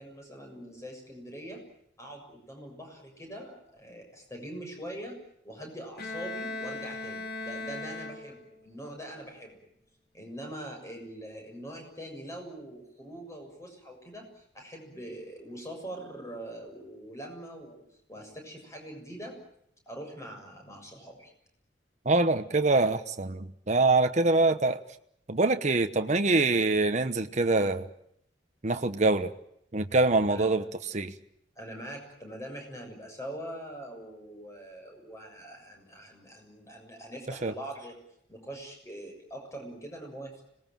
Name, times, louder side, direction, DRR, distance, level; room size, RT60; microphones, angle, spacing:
voice 1, 0.0-1.6 2.0-9.7 10.1-19.4 19.9-21.3 30.3-30.4 31.6-37.9 38.3-40.4, right 1 dB, 15° left, 3 dB, 7.0 m, -43 dB
Bowed string instrument, 6.0-8.7, left 2 dB, 55° left, 2.2 m, -38 dB
voice 2, 22.0-24.8 25.3-27.9 28.6-29.3 29.7-30.6 30.9-31.1 37.4-37.5, right 3 dB, 40° right, 7 dB, 1.1 m, -24 dB
26.0 x 20.0 x 9.1 m, 0.74 s
head